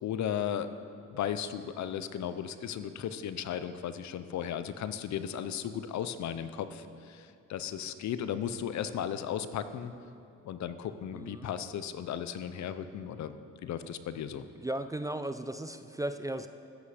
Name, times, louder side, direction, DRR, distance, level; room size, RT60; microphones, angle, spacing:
voice 1, 0.0-0.7 1.1-9.9 10.4-13.4 13.6-14.4, left 9 dB, 65° left, 11 dB, 0.7 m, -35 dB
voice 2, 11.1-11.5 14.6-16.5, right 1 dB, 10° right, 9 dB, 0.4 m, -36 dB
13.5 x 8.3 x 5.0 m, 2.5 s
cardioid pair, 90°, 30 cm